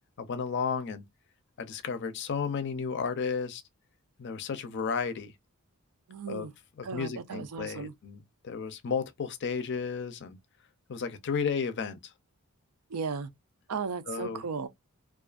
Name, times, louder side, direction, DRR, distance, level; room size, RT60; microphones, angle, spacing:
voice 1, 0.2-1.0 1.6-3.6 4.2-5.3 6.3-6.5 6.8-10.4 10.9-12.0 14.1-14.4, left 5 dB, 50° left, 0.5 m, -33 dB
voice 2, 6.1-6.5 6.8-7.9 12.9-13.3 13.7-14.7, right 5 dB, 85° right, 0.5 m, -35 dB
2.4 x 2.3 x 2.3 m
head